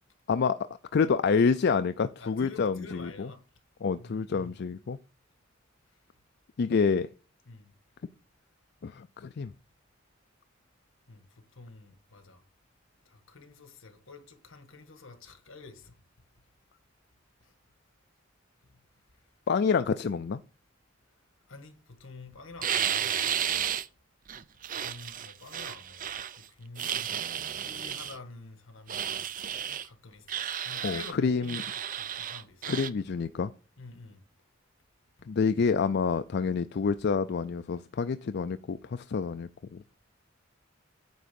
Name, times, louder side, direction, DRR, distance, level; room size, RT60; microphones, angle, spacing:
voice 1, 0.3-0.6 0.9-3.3 3.8-5.0 6.6-7.1 8.8-9.5 19.5-20.4 30.8-31.6 32.7-33.5 35.3-39.8, left 5 dB, 55° left, 0.4 m, -27 dB
voice 2, 2.2-3.4 3.9-4.6 7.5-7.7 11.1-12.4 13.0-15.9 17.4-17.5 18.6-18.8 21.5-23.2 24.5-27.2 27.6-29.3 29.7-30.4 30.6-31.7 32.0-32.7 33.8-34.2 35.2-35.3, left 3 dB, 75° left, 1.7 m, -48 dB
sound 1, 22.6-23.9 24.3-26.4 26.8-28.2 28.9-29.9 30.3-31.1 31.4-32.9, right 9 dB, 40° right, 0.5 m, -33 dB
9.3 x 3.6 x 7.0 m
head